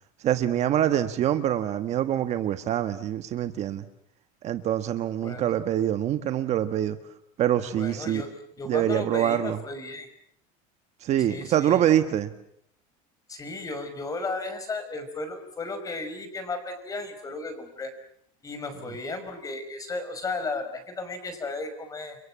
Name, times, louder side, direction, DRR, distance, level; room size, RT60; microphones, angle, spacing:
voice 1, 0.2-3.9 4.4-7.0 7.4-8.2 8.7-9.6 11.0-12.3, right 11 dB, 40° right, 9 dB, 1.5 m, -25 dB
voice 2, 7.7-8.3 8.6-10.1 11.3-11.8 13.3-17.9 18.4-22.2, left 3 dB, 20° left, 9 dB, 5.6 m, -34 dB
30.0 x 23.5 x 7.5 m, 0.71 s
supercardioid pair, 145°, 18 cm